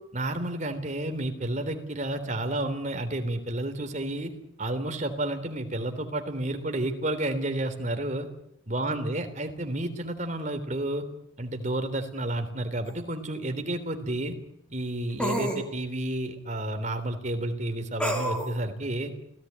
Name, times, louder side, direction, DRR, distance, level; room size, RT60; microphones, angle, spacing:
voice 1, 0.1-4.3 4.6-8.3 8.7-11.1 11.4-14.4 14.7-19.1, right 1 dB, 35° right, 7 dB, 3.3 m, -31 dB
sound 1, 12.9-13.0 15.2-15.6 18.0-18.5, right 1 dB, 5° left, 4.1 m, -28 dB
29.5 x 18.0 x 9.5 m, 0.78 s
head